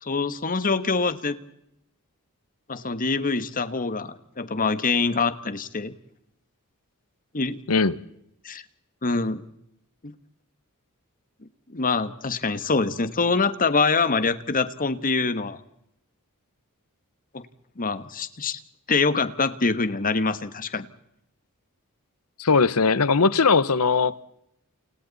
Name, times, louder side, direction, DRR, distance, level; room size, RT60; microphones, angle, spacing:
voice 1, 0.0-1.4 2.7-5.9 7.3-7.6 8.4-8.6 9.0-9.4 10.0-10.1 11.7-15.6 17.3-17.4 17.8-18.6 18.9-20.9, left 4 dB, 40° left, 1.3 m, -25 dB
voice 2, 22.4-24.1, left 4 dB, 85° left, 1.0 m, -19 dB
29.0 x 28.5 x 4.1 m
head